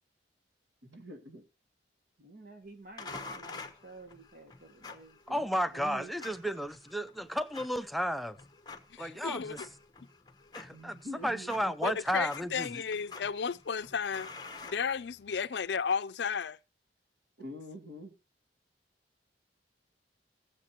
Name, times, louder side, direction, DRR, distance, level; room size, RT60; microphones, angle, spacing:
voice 1, 0.8-1.4 5.3-6.4 10.7-11.7 17.4-18.1, equal, 90° right, 2.5 m, -46 dB
voice 2, 2.2-5.2 9.3-9.4, right 2 dB, 50° right, 1.5 m, -52 dB
sound 1, 3.0-15.5, left 3 dB, 20° left, 1.0 m, -49 dB
voice 3, 5.3-8.4 9.0-9.6 10.5-11.0 11.2-12.7, equal, ahead, 0.5 m, -33 dB
voice 4, 8.9-9.7 11.8-14.3 14.6-16.6, left 6 dB, 65° left, 0.5 m, -33 dB
19.0 x 7.5 x 3.0 m
head